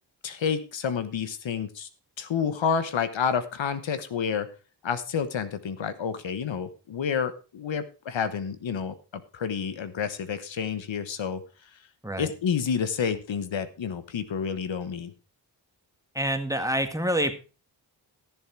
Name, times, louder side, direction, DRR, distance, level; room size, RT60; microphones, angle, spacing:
voice 1, 0.2-1.9 2.2-4.5 4.8-9.0 9.3-11.4 12.2-15.1, left 7 dB, 80° left, 12 dB, 1.1 m, -29 dB
voice 2, 16.1-17.4, equal, 5° right, 7 dB, 1.8 m, -27 dB
13.5 x 7.2 x 4.6 m, 0.33 s
cardioid pair, 55°, 45 cm